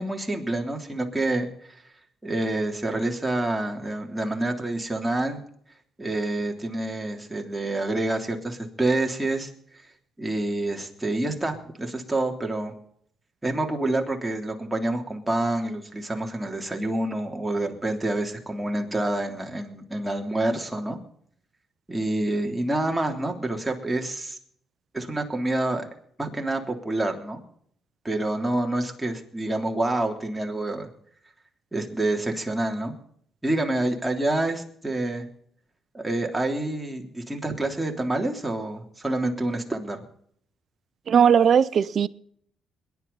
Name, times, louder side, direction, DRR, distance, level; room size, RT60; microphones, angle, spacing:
voice 1, 0.0-1.5 2.2-5.4 6.0-9.5 10.2-12.7 13.4-21.0 21.9-24.4 24.9-25.9 26.2-27.4 28.0-30.9 31.7-32.9 33.4-35.2 35.9-40.0, right 2 dB, 10° right, 1 dB, 3.3 m, -27 dB
voice 2, 41.1-42.1, right 7 dB, 55° right, 19 dB, 0.6 m, -18 dB
22.0 x 11.0 x 4.1 m, 0.64 s
cardioid pair, 90°, 0 cm